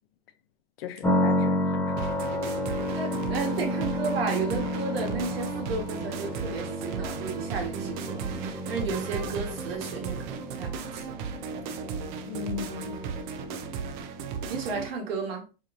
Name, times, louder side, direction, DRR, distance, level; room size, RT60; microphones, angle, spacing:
voice 1, 0.8-2.1 12.3-13.0, left 9 dB, 85° left, 0.7 m, -38 dB
sound 1, 1.0-14.9, left 1 dB, 5° left, 0.6 m, -32 dB
sound 2, 2.0-14.9, right 6 dB, 55° right, 0.6 m, -36 dB
voice 2, 2.9-11.1 14.5-15.5, right 4 dB, 85° right, 1.4 m, -33 dB
4.3 x 3.0 x 2.5 m
supercardioid pair, 145°, 29 cm